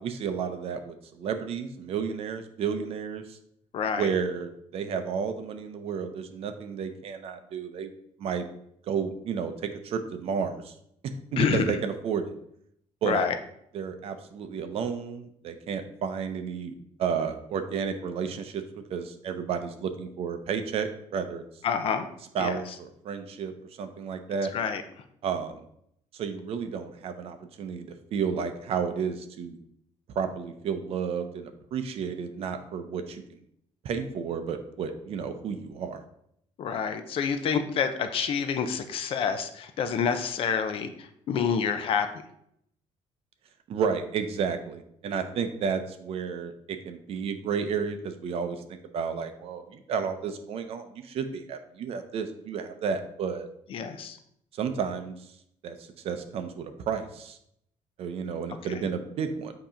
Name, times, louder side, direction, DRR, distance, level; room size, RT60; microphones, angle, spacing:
voice 1, 0.0-3.4 4.0-7.9 8.2-8.4 8.9-10.7 11.3-12.3 13.0-13.3 13.7-16.7 17.0-18.6 18.9-21.4 22.3-23.5 23.8-24.5 25.2-25.6 26.1-29.6 30.1-33.2 33.8-36.0 43.7-46.5 46.8-48.6 48.9-53.5 54.5-55.3 55.6-57.4 58.0-59.5, right 6 dB, 50° right, 8 dB, 0.6 m, -32 dB
voice 2, 3.7-4.1 11.4-11.6 13.0-13.4 21.6-22.1 22.4-22.6 24.5-24.8 36.6-42.2 53.7-54.2 58.7-58.8, left 6 dB, 45° left, 9 dB, 0.6 m, -28 dB
7.9 x 2.9 x 5.0 m, 0.73 s
cardioid pair, 180°, 13 cm